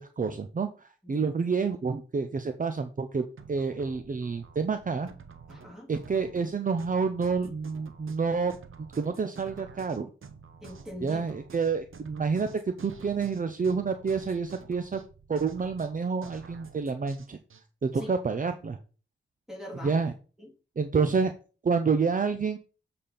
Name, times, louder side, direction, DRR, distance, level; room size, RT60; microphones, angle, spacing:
voice 1, 0.0-5.1 5.9-8.5 8.9-10.1 11.0-15.0 15.3-17.4 17.8-18.8 19.8-20.1 20.8-21.3 21.6-22.6, right 5 dB, 40° right, 8 dB, 0.6 m, -28 dB
sound 1, 3.4-17.6, right 5 dB, 75° right, 0.9 m, -49 dB
voice 2, 5.5-5.9 10.6-11.3 17.9-18.1 19.5-20.0 20.4-20.5, left 1 dB, 5° right, -1 dB, 3.0 m, -42 dB
7.4 x 4.3 x 5.0 m, 0.36 s
wide cardioid pair, 95°, 21 cm